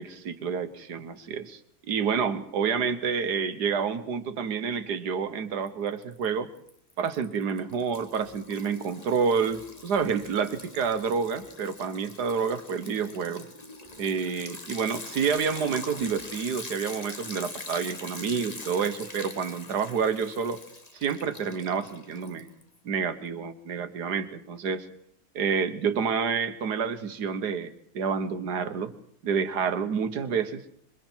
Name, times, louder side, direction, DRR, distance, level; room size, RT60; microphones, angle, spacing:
voice 1, 0.0-1.6 1.9-6.5 7.0-13.5 14.0-20.6 20.9-22.5 22.9-24.9 25.4-28.9 29.2-30.6, right 6 dB, 80° right, 11 dB, 1.7 m, -28 dB
Liquid, 5.7-6.3 6.6-22.8, left 2 dB, 25° left, 1.6 m, -43 dB
26.5 x 23.5 x 4.5 m, 0.68 s
omnidirectional pair, 1.7 m